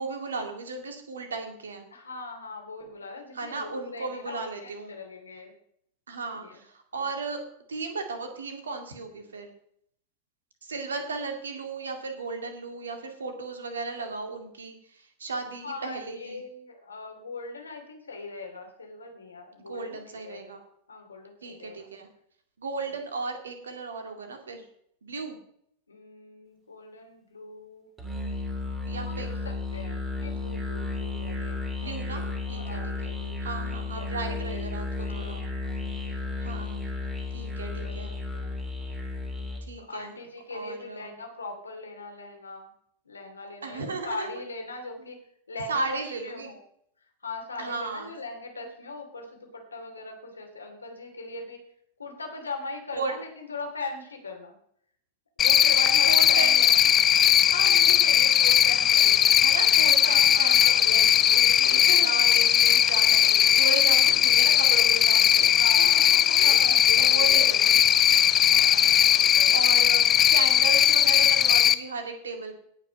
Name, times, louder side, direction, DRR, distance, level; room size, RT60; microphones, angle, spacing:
voice 1, 0.0-1.9 3.3-5.0 6.1-7.4 7.7-9.5 10.6-16.4 19.7-20.6 21.4-22.1 22.6-24.7 25.0-25.4 28.9-29.4 31.8-33.1 33.4-35.4 36.4-36.8 37.3-38.1 39.7-40.2 40.5-41.1 43.6-44.4 45.0-45.1 45.7-46.5 47.6-48.1 52.9-53.1 56.1-56.5 59.4-66.1 66.4-67.8 68.5-68.9 69.2-72.5, right 4 dB, 70° right, 5 dB, 2.2 m, -35 dB
voice 2, 1.9-5.5 6.4-6.5 6.9-7.1 15.6-20.0 20.2-20.4 20.9-21.8 25.9-27.9 29.1-33.3 33.9-34.7 35.0-36.4 37.6-38.0 38.3-38.6 39.8-42.7 43.0-45.2 45.5-46.6 47.2-51.6 52.0-54.5 55.4-56.8 57.5-59.4 60.0-62.1 65.4-67.6 68.5-69.8, left 3 dB, 75° left, 3 dB, 2.7 m, -40 dB
Musical instrument, 28.0-39.7, left 3 dB, 15° right, 3.1 m, -33 dB
Cricket, 55.4-71.7, left 10 dB, 30° left, 0.7 m, -19 dB
17.5 x 6.0 x 5.3 m, 0.68 s
figure-of-eight pair, 90°, 0 cm